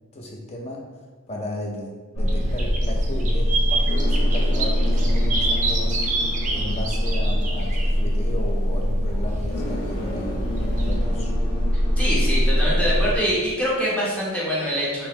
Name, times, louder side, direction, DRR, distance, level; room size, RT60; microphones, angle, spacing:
voice 1, 0.1-11.3, left 1 dB, 30° left, 0 dB, 0.5 m, -35 dB
sound 1, 2.1-13.2, equal, 90° left, 0.9 m, -22 dB
sound 2, 2.3-2.4 2.6-7.9 10.8-10.9, right 3 dB, 35° right, 0.4 m, -28 dB
voice 2, 12.0-15.1, equal, 5° left, -7 dB, 0.8 m, -24 dB
3.6 x 2.9 x 3.1 m, 1.3 s
head